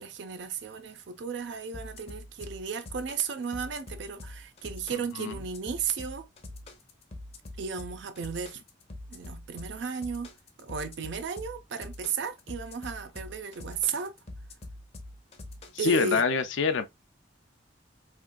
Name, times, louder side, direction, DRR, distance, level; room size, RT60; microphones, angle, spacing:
voice 1, 0.0-6.3 7.6-8.6 9.1-10.3 10.6-14.2 15.8-16.2, right 6 dB, 65° right, 0.4 m, -34 dB
sound 1, 1.7-16.0, left 1 dB, 35° left, 0.6 m, -44 dB
voice 2, 15.8-16.9, left 4 dB, 85° left, 0.5 m, -25 dB
3.5 x 2.5 x 2.2 m
head